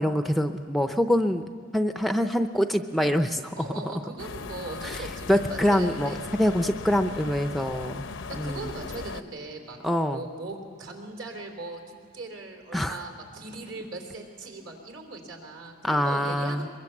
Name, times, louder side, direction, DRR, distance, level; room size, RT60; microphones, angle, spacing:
voice 1, 0.0-1.4 1.7-3.7 4.8-8.0 8.4-8.7 9.8-10.2 12.7-13.0 15.8-16.7, equal, ahead, 7 dB, 0.5 m, -25 dB
voice 2, 3.6-6.2 8.4-9.8 10.1-16.7, right 2 dB, 65° right, 2 dB, 3.8 m, -39 dB
sound 1, 4.2-9.2, left 4 dB, 65° left, 0.7 m, -38 dB
23.5 x 23.0 x 7.2 m, 2.2 s
head